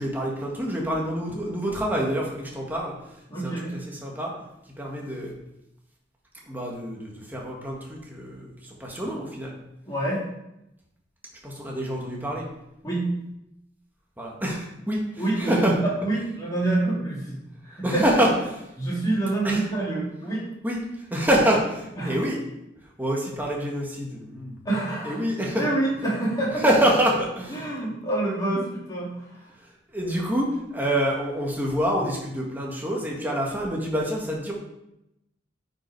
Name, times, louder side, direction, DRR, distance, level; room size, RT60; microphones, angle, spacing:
voice 1, 0.0-2.9 3.4-4.3 4.8-5.3 6.5-9.6 11.4-12.5 14.2-15.8 17.8-18.6 19.4-19.6 20.6-20.8 21.1-22.4 23.0-24.6 25.0-25.7 26.5-27.6 29.9-34.5, equal, 10° right, -2 dB, 1.8 m, -26 dB
voice 2, 3.3-3.8 9.9-10.2 12.8-13.1 15.2-17.4 17.7-18.0 18.8-20.5 22.0-22.3 24.6-25.2 25.6-26.6 27.5-29.4, right 2 dB, 20° left, -6 dB, 3.3 m, -27 dB
9.4 x 5.7 x 4.7 m, 0.86 s
head